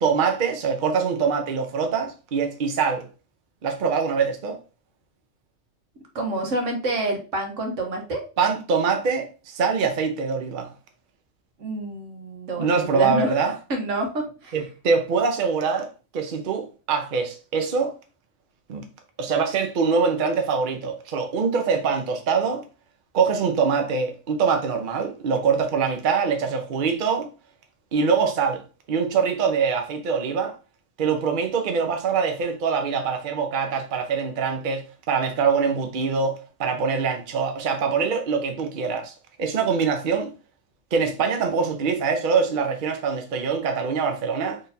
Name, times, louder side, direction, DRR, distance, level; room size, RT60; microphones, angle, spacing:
voice 1, 0.0-3.1 3.6-4.6 8.4-10.7 12.6-13.6 14.5-15.9 16.1-18.0 18.7-18.8 19.2-22.6 23.1-27.3 27.9-28.6 28.9-30.6 31.0-39.1 39.4-40.3 40.9-44.6, right 5 dB, 50° right, 0.8 m, -24 dB
voice 2, 6.1-8.2 11.6-13.4 13.7-14.6, right 1 dB, 85° right, 1.4 m, -28 dB
4.1 x 3.3 x 2.7 m
omnidirectional pair, 1.2 m